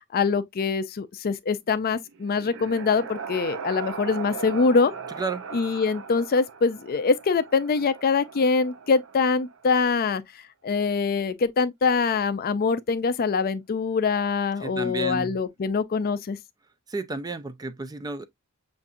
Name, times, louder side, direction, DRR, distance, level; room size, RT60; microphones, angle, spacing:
voice 1, 0.1-4.9 5.5-10.2 10.6-16.4, left 4 dB, 45° left, 0.4 m, -24 dB
sound 1, 2.0-9.8, right 6 dB, 60° right, 0.6 m, -39 dB
voice 2, 14.6-15.4 16.9-18.3, right 3 dB, 20° right, 0.4 m, -31 dB
6.8 x 2.6 x 2.5 m
head